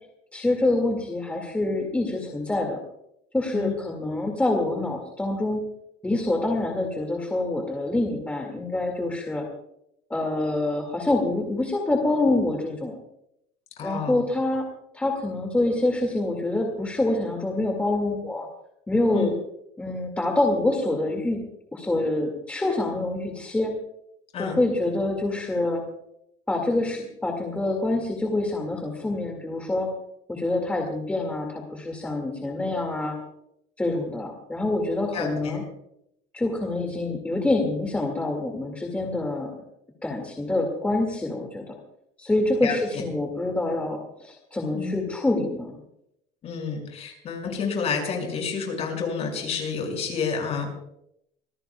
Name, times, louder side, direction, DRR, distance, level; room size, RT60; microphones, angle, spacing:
voice 1, 0.3-2.8 3.3-5.6 6.0-9.5 10.1-12.9 13.8-14.7 14.9-18.5 18.9-19.3 19.8-21.4 21.7-23.7 24.4-25.8 26.5-29.9 30.3-33.2 33.8-35.6 36.3-39.5 40.0-41.7 42.2-45.7, left 2 dB, 10° left, 1 dB, 2.1 m, -26 dB
voice 2, 13.8-14.2 19.1-19.3 24.3-24.6 35.1-35.6 42.6-42.8 44.7-44.9 46.4-50.7, left 5 dB, 35° left, 2 dB, 5.9 m, -29 dB
25.5 x 19.5 x 2.3 m, 0.79 s
cardioid pair, 160°, 17 cm